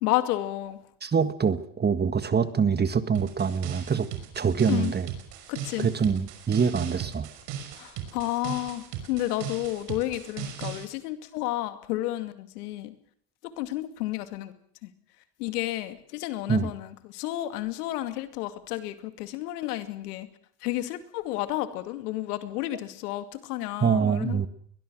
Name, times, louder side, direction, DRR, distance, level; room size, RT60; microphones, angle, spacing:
voice 1, 0.0-0.8 4.7-4.9 5.5-5.9 7.7-12.9 13.4-14.5 14.8-14.9 15.4-20.3 20.6-24.5, left 15 dB, 85° left, 10 dB, 2.5 m, -31 dB
voice 2, 1.0-4.1 4.4-5.1 5.8-7.3 16.5-16.7 23.8-24.5, right 6 dB, 20° right, 12 dB, 1.7 m, -25 dB
sound 1, 3.1-10.8, right 8 dB, 60° right, 5.8 m, -38 dB
22.0 x 20.5 x 6.3 m, 0.62 s
supercardioid pair, 110°, 45 cm